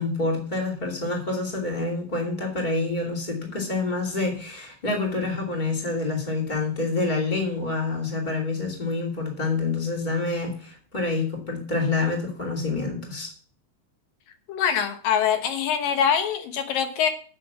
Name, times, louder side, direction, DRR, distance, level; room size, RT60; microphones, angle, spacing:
voice 1, 0.0-13.3, left 3 dB, 15° left, 1 dB, 2.0 m, -27 dB
voice 2, 14.5-17.1, left 8 dB, 70° left, 8 dB, 2.5 m, -24 dB
8.6 x 6.7 x 7.2 m, 0.43 s
omnidirectional pair, 4.5 m